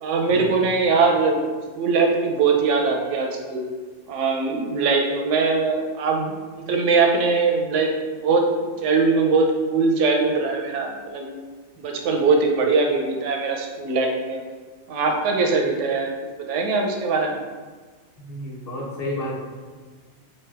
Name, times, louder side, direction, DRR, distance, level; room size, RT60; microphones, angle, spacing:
voice 1, 0.0-1.5 1.8-3.6 4.1-7.9 8.2-11.4 11.8-14.4 14.9-16.1 16.5-17.4, right 4 dB, 85° right, 2 dB, 0.9 m, -21 dB
voice 2, 18.2-19.4, left 1 dB, 35° left, -5 dB, 1.0 m, -31 dB
3.9 x 3.3 x 3.2 m, 1.4 s
omnidirectional pair, 1.2 m